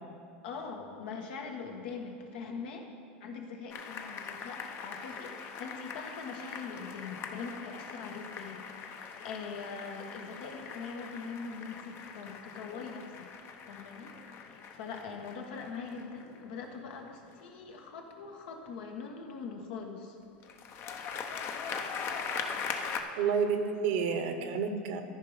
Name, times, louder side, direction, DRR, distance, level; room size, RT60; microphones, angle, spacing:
voice 1, 0.4-2.9 3.2-13.3 13.7-14.1 14.5-20.2, left 5 dB, 75° left, 2 dB, 1.4 m, -42 dB
sound 1, 3.7-17.7 20.4-23.0, left 6 dB, 45° left, 0.9 m, -41 dB
voice 2, 23.2-25.0, right 6 dB, 65° right, 7 dB, 1.0 m, -30 dB
13.5 x 5.1 x 5.0 m, 2.4 s
hypercardioid pair, 100°, 6 cm